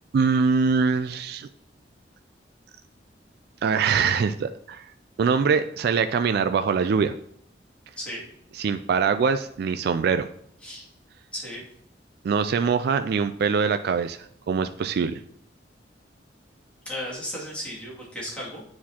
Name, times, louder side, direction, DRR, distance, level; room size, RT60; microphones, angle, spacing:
voice 1, 0.1-1.5 3.6-4.9 5.2-7.1 8.5-10.3 12.2-14.2 14.5-15.2, right 5 dB, 60° right, 9 dB, 0.3 m, -23 dB
voice 2, 11.3-11.6 16.9-18.6, equal, 5° left, -7 dB, 2.4 m, -35 dB
9.3 x 4.4 x 2.9 m, 0.67 s
head